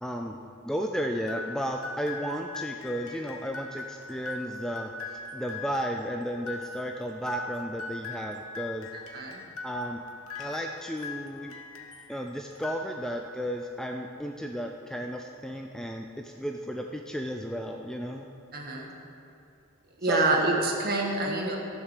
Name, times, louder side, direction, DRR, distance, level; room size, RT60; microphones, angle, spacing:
voice 1, 0.0-8.9 9.6-10.0 10.4-11.5 12.1-18.3 20.0-20.4 21.3-21.5, equal, 5° left, 2 dB, 0.4 m, -34 dB
sound 1, 1.3-12.1 12.5-13.4, left 3 dB, 75° left, 1.3 m, -41 dB
voice 2, 18.5-18.9 20.0-21.6, right 2 dB, 45° right, 0 dB, 1.6 m, -27 dB
14.0 x 7.2 x 6.6 m, 2.6 s
head